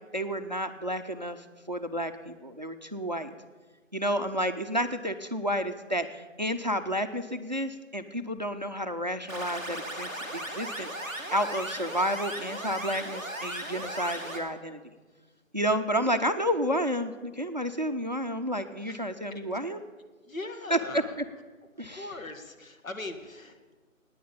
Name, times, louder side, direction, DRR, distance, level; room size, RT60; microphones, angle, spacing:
voice 1, 0.1-3.3 3.9-14.8 15.5-19.8 20.7-20.8 21.8-22.1, equal, 35° right, 8 dB, 0.5 m, -31 dB
sound 1, 9.3-14.4, right 1 dB, 15° left, 1.4 m, -37 dB
voice 2, 20.3-21.2 21.8-23.8, left 2 dB, 75° left, 6 dB, 1.7 m, -41 dB
11.0 x 9.4 x 8.6 m, 1.3 s
figure-of-eight pair, 160°, 40 cm